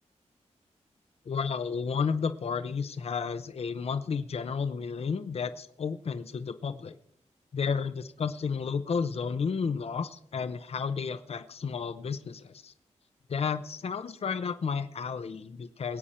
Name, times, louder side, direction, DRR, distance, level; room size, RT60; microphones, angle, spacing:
voice 1, 1.3-7.0 7.5-12.7 13.3-16.0, left 5 dB, 60° left, 11 dB, 0.7 m, -32 dB
21.5 x 8.8 x 4.3 m, 0.68 s
wide cardioid pair, 125°, 12 cm